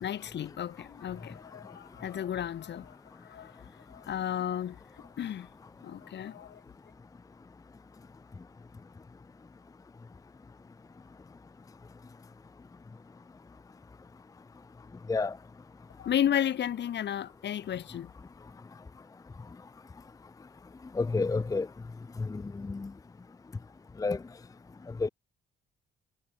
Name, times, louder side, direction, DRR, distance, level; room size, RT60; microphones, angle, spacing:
voice 1, 0.0-3.6 3.9-5.5 5.8-6.6 16.0-18.1, left 10 dB, 60° left, 1.9 m, -33 dB
voice 2, 21.0-21.7 22.3-22.9 24.0-24.2 25.0-25.1, left 3 dB, 15° left, 0.6 m, -29 dB
cardioid pair, 90°, 20 cm